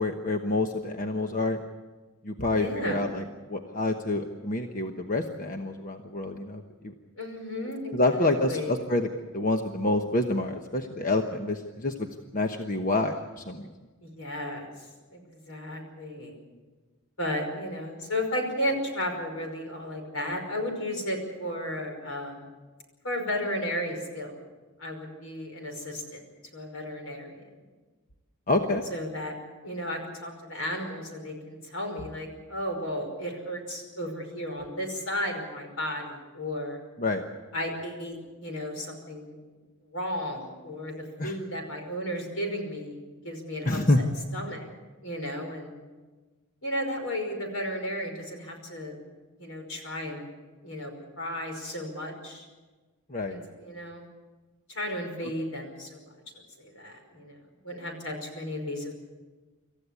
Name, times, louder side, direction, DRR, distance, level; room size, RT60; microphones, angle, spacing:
voice 1, 0.0-1.6 2.2-3.2 3.5-6.9 7.9-9.1 9.3-12.1 12.3-13.7 28.5-28.8 37.0-37.2 41.2-41.3 43.6-44.0 53.1-53.4, left 2 dB, 40° left, 4 dB, 1.1 m, -27 dB
voice 2, 2.5-3.1 7.2-8.9 14.0-14.7 15.1-16.4 17.2-22.5 23.0-24.4 24.8-26.2 26.5-27.4 28.9-29.3 29.6-36.8 37.5-39.4 39.9-40.9 41.2-43.8 44.3-44.7 45.0-45.7 46.6-48.9 49.4-50.2 50.6-52.5 53.3-54.1 54.7-56.0 56.3-57.4 57.6-58.9, left 1 dB, 75° left, 4 dB, 5.4 m, -34 dB
26.5 x 14.5 x 8.4 m, 1.3 s
head